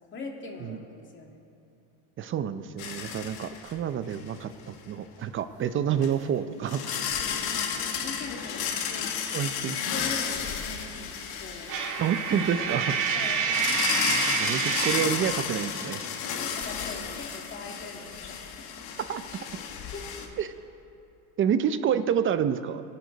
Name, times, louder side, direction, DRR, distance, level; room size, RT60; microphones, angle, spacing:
voice 1, 0.1-0.8 1.1-1.4 7.4-9.1 9.9-11.1 11.4-11.7 13.1-13.5 16.3-18.8 19.9-20.1, left 3 dB, 30° left, 0 dB, 2.4 m, -41 dB
voice 2, 2.2-6.9 9.3-9.8 12.0-13.0 14.4-16.0 19.1-19.2 20.4-20.5 21.4-22.8, right 8 dB, 30° right, 12 dB, 0.6 m, -28 dB
sound 1, 2.8-3.8 4.1-4.3 6.0-6.1 6.7-20.3, left 7 dB, 65° left, 1.7 m, -33 dB
Coin (dropping), 11.7-15.2, right 6 dB, 50° right, 2.1 m, -28 dB
24.5 x 11.5 x 4.0 m, 2.6 s
cardioid pair, 135°, 40 cm